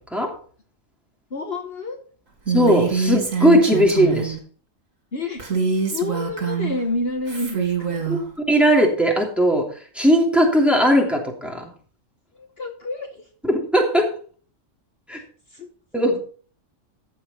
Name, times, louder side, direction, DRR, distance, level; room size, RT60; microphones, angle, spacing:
voice 1, 1.3-2.0 5.1-5.4 5.9-8.0 12.3-13.3 15.5-15.7, left 2 dB, 50° left, 4 dB, 1.5 m, -29 dB
voice 2, 2.5-4.4 8.1-11.6 13.4-14.1 15.1-15.2 15.9-16.2, equal, ahead, 0 dB, 2.9 m, -18 dB
Female speech woman speaking, 2.5-4.4 5.4-6.8 7.3-8.2, right 6 dB, 90° right, 2.9 m, -24 dB
15.5 x 6.9 x 4.3 m, 0.43 s
omnidirectional pair, 1.3 m